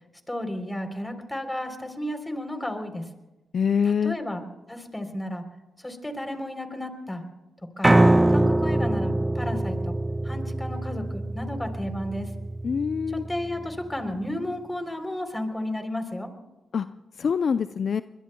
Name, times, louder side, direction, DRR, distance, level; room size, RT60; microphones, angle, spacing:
voice 1, 0.3-3.1 4.0-4.4 4.7-5.4 5.8-7.2 7.8-8.0 8.3-10.0 10.2-12.3 13.1-16.3, left 1 dB, 15° left, 6 dB, 3.6 m, -33 dB
voice 2, 3.5-4.2 12.6-13.3 16.7-16.9 17.2-18.0, left 6 dB, 60° left, 12 dB, 0.5 m, -24 dB
Piano, 7.8-14.0, right 1 dB, 20° right, 0.4 m, -24 dB
24.5 x 21.5 x 2.3 m, 1.0 s
hypercardioid pair, 45°, 0 cm